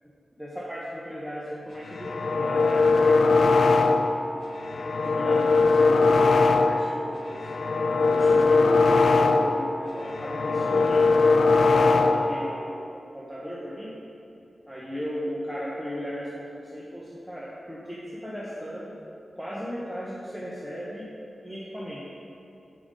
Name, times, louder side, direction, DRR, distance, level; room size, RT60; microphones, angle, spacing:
voice 1, 0.4-4.2 5.0-7.6 8.1-11.1 11.6-14.0 14.7-19.0 19.3-21.1 21.4-22.0, equal, 5° right, -7 dB, 0.9 m, -36 dB
sound 1, 1.9-4.3 4.6-7.0 7.3-9.7 10.0-12.4, left 3 dB, 70° left, 0.3 m, -20 dB
7.8 x 3.8 x 5.2 m, 2.6 s
wide cardioid pair, 90°, 0 cm